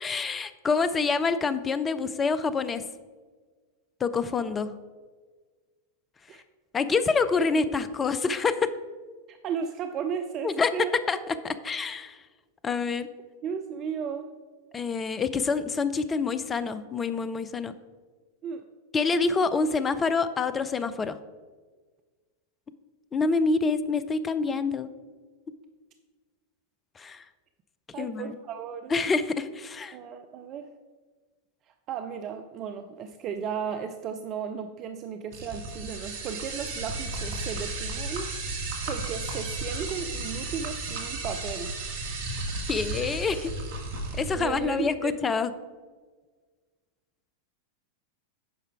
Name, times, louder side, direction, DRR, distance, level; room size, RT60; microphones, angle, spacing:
voice 1, 0.0-2.8 4.0-4.7 6.7-8.7 10.4-10.7 11.1-11.2 11.4-12.2 12.6-13.1 14.7-17.7 18.9-21.2 23.1-24.9 27.0-27.2 28.0-28.4 28.9-30.0 42.7-43.5 44.2-45.5, left 4 dB, 20° left, 12 dB, 0.5 m, -27 dB
voice 2, 9.3-10.9 13.4-14.3 18.4-18.6 27.9-28.9 29.9-30.7 31.9-38.3 38.9-41.7 43.3-43.4 44.1-45.4, right 7 dB, 35° right, 7 dB, 0.5 m, -35 dB
sound 1, 35.3-44.4, right 2 dB, 55° right, 1.5 m, -34 dB
9.2 x 5.5 x 4.8 m, 1.4 s
figure-of-eight pair, 90°, 0 cm